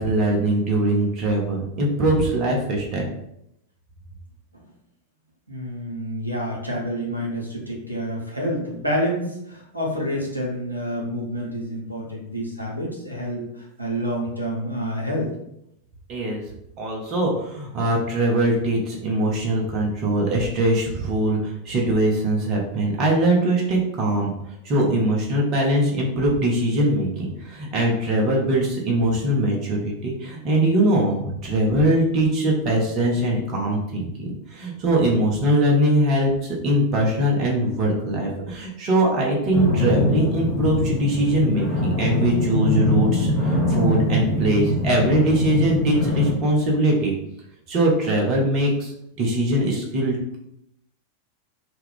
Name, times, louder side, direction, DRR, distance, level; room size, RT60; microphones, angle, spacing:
voice 1, 0.0-3.1 16.1-16.4 16.8-24.3 24.6-47.1 47.7-48.9 49.2-50.2, right 1 dB, 35° right, -1 dB, 0.7 m, -21 dB
voice 2, 5.5-15.3, equal, 90° right, -3 dB, 0.7 m, -28 dB
sound 1, 39.5-46.3, left 1 dB, 5° left, 0.8 m, -23 dB
2.3 x 2.2 x 3.4 m, 0.79 s
figure-of-eight pair, 90°, 0 cm